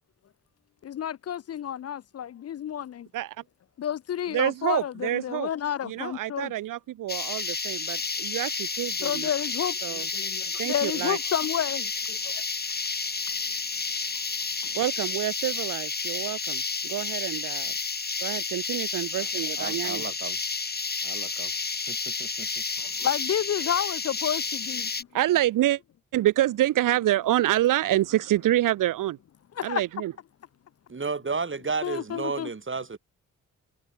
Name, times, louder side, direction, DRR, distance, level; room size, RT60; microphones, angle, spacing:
voice 1, 0.8-3.1 3.8-6.5 9.0-12.4 22.8-24.9 29.6-29.8 31.8-32.5, left 9 dB, 50° left, 0.4 m, -30 dB
voice 2, 4.3-5.5 5.8-9.3 9.8-10.1 10.6-11.2 14.7-17.7 18.2-20.0 25.1-25.8 26.1-29.2 29.6-30.1, right 14 dB, 85° right, 0.5 m, -27 dB
sound 1, 7.1-25.0, left 4 dB, 30° left, 1.2 m, -31 dB
voice 3, 19.6-20.4 21.0-21.5 21.9-22.6 30.9-33.0, right 4 dB, 40° right, 2.3 m, -33 dB
cardioid pair, 50°, 32 cm